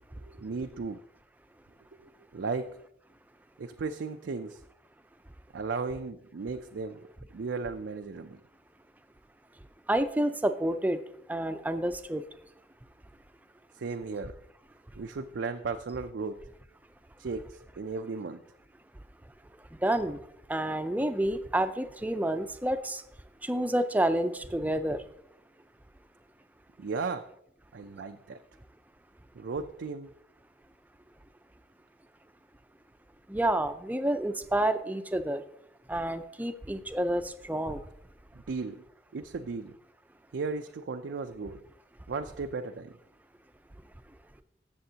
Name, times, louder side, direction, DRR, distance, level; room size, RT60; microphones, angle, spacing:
voice 1, 0.1-1.0 2.0-2.8 3.6-4.6 5.5-7.0 7.3-8.4 13.7-14.4 15.0-16.4 17.2-18.4 26.8-27.3 27.7-28.4 29.3-30.1 38.5-38.8 39.1-39.8 40.3-41.6 42.1-43.0, right 4 dB, 80° right, 7 dB, 0.4 m, -35 dB
voice 2, 9.9-11.0 11.3-12.2 19.8-20.2 20.5-23.0 23.4-25.0 33.3-35.4 35.9-37.8, right 1 dB, 10° right, 10 dB, 0.5 m, -29 dB
15.5 x 6.9 x 2.8 m, 0.73 s
head